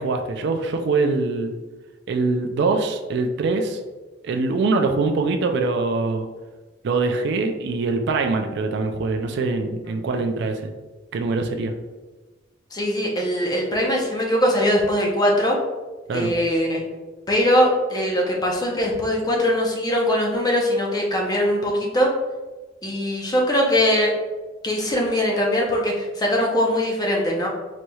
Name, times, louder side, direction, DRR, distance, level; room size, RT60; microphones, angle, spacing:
voice 1, 0.0-1.5 2.1-3.8 4.2-6.3 6.8-10.7 11.1-11.7 16.1-16.3, right 3 dB, 60° right, 6 dB, 0.3 m, -23 dB
voice 2, 12.7-15.6 16.1-16.8 17.3-22.1 22.8-24.1 24.6-27.5, equal, 20° left, -1 dB, 0.6 m, -21 dB
4.0 x 3.1 x 2.3 m, 1.2 s
head